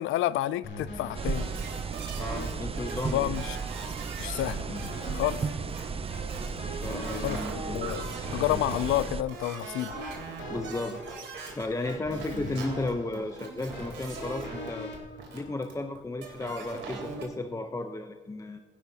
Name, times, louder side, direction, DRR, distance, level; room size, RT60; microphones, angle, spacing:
voice 1, 0.0-1.5 3.1-3.6 4.2-4.6 5.1-5.5 7.2-9.9, left 14 dB, 80° left, 0.4 m, -29 dB
sound 1, 0.6-15.9, left 1 dB, 65° left, 3.8 m, -43 dB
sound 2, 1.1-9.2, right 5 dB, 30° right, 0.6 m, -35 dB
sound 3, 1.3-2.5 2.8-17.2, right 4 dB, 70° right, 3.4 m, -41 dB
voice 2, 2.1-3.4 6.8-7.8 10.5-11.2 11.6-14.9 15.3-18.6, left 2 dB, 15° left, 0.7 m, -34 dB
18.0 x 11.0 x 2.8 m
cardioid pair, 90°, 20 cm